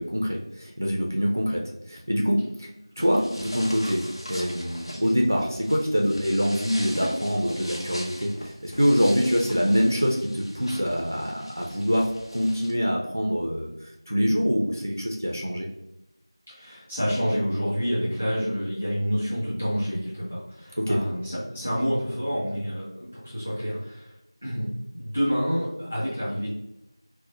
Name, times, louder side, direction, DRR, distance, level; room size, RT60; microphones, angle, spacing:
voice 1, 0.0-1.6 1.9-2.7 3.0-8.3 8.6-15.7 20.8-21.0, equal, 35° right, -1 dB, 0.3 m, -25 dB
sound 1, 3.0-12.7, equal, 85° left, 0.8 m, -40 dB
voice 2, 16.5-24.1 24.4-26.5, equal, 15° left, -10 dB, 0.8 m, -28 dB
4.2 x 2.0 x 2.5 m, 0.87 s
figure-of-eight pair, 180°, 3 cm